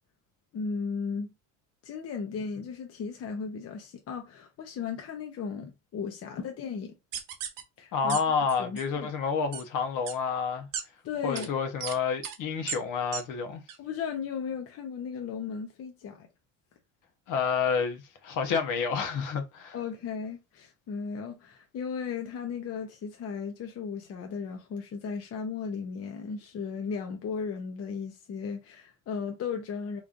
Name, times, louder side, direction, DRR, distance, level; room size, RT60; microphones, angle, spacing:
voice 1, 0.5-1.3 1.8-6.9 7.8-8.2 8.6-9.1 11.0-11.5 13.8-16.3 19.7-30.0, left 6 dB, 40° left, 0.8 m, -36 dB
sound 1, 7.1-7.6 8.1-8.2 8.5-8.8 9.5-9.6 10.1-10.2 10.7-10.8 11.3-11.5 11.8-11.9 12.2-12.4 12.7-12.8 13.1-13.2 13.7-13.8, right 8 dB, 65° right, 0.9 m, -34 dB
voice 2, 7.9-10.7 11.2-13.6 17.3-19.8, left 6 dB, 60° left, 1.0 m, -29 dB
3.7 x 3.1 x 2.5 m
cardioid pair, 125°, 36 cm